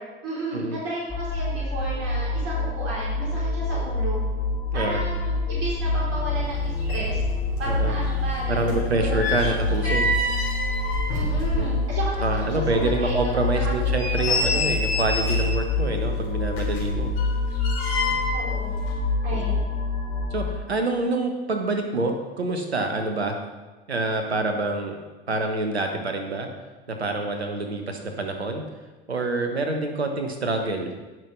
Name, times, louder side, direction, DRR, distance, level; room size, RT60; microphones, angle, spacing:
voice 1, 0.0-4.2 4.7-6.6 6.9-7.2 7.6-9.5 9.8-10.0 11.1-13.9 14.2-14.7 18.3-18.7 19.2-19.6, right 1 dB, 50° right, -6 dB, 3.7 m, -33 dB
sound 1, 1.1-20.6, left 2 dB, 15° left, 2.3 m, -27 dB
sound 2, 6.5-6.6 6.8-7.8 8.1-12.0 12.4-12.5 13.0-13.1 13.7-15.6 16.5-18.5 18.8-18.9, left 1 dB, 70° left, 3.6 m, -28 dB
voice 2, 8.5-10.1 11.5-11.8 12.2-17.1 19.3-19.5 20.3-23.3 23.9-25.0 25.3-26.5 26.9-28.6 29.1-31.0, right 2 dB, 90° right, 4 dB, 1.3 m, -26 dB
18.5 x 6.2 x 3.3 m, 1.2 s
figure-of-eight pair, 70°, 31 cm